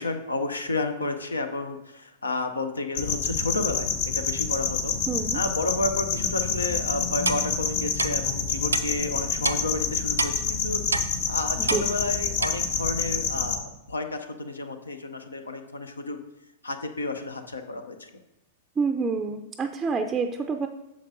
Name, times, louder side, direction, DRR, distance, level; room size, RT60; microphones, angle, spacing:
voice 1, 0.0-5.0 5.3-16.2 16.6-18.1, left 2 dB, 85° left, 8 dB, 0.6 m, -31 dB
sound 1, 3.0-13.6, left 5 dB, 60° left, 0.9 m, -28 dB
voice 2, 5.1-5.4 11.7-11.9 18.8-20.7, right 4 dB, 20° right, 5 dB, 0.4 m, -27 dB
Clock, 7.2-7.4 8.0-8.1 8.7-8.8 9.4-9.6 10.2-10.3 10.9-11.1 11.7-11.8 12.4-12.5, right 3 dB, 90° right, 0.4 m, -26 dB
8.4 x 6.3 x 2.7 m, 0.95 s
figure-of-eight pair, 100°, 0 cm